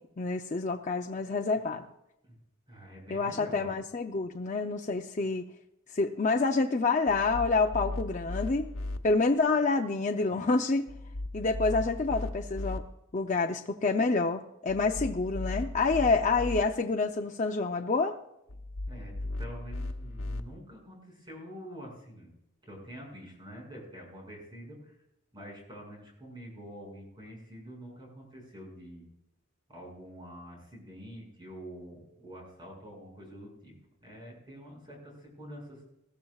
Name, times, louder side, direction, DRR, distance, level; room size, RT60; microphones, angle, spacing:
voice 1, 0.0-1.8 3.1-5.4 5.9-8.7 9.0-10.9 11.3-12.8 13.1-18.2, left 3 dB, 35° left, 3 dB, 0.6 m, -28 dB
voice 2, 2.7-3.7 10.3-10.5 18.9-22.3 22.6-25.0 25.3-29.0 29.7-33.7 34.0-35.8, equal, 20° right, -1 dB, 5.9 m, -46 dB
sound 1, 7.1-9.0 10.9-12.8 14.7-16.6 18.5-20.4, left 2 dB, 80° left, 1.0 m, -36 dB
20.5 x 14.0 x 2.4 m, 0.85 s
head